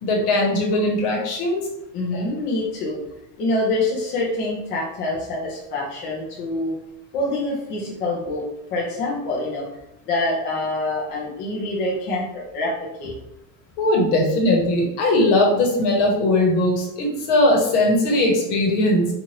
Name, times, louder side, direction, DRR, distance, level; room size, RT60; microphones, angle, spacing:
voice 1, 0.0-1.6 2.1-2.2 13.8-19.1, left 1 dB, 55° left, 0 dB, 1.1 m, -19 dB
voice 2, 1.9-3.0 3.4-6.7 7.1-8.4 8.7-9.6 10.1-13.1, left 2 dB, 25° left, -4 dB, 0.4 m, -25 dB
2.7 x 2.5 x 3.0 m, 0.84 s
supercardioid pair, 150°, 48 cm